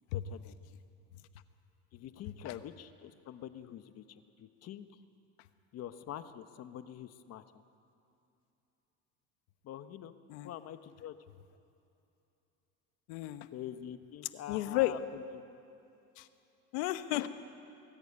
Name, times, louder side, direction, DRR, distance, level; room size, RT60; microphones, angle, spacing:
voice 1, 0.1-0.6 1.9-4.0 4.4-4.9 5.7-7.4 9.6-10.1 10.4-11.2 13.5-15.2, left 10 dB, 50° left, 10 dB, 1.1 m, -45 dB
voice 2, 13.1-13.5 14.5-14.9 16.2-16.3 16.7-17.3, left 17 dB, 85° left, 11 dB, 1.1 m, -32 dB
21.0 x 14.0 x 9.6 m, 2.8 s
cardioid pair, 125°, 33 cm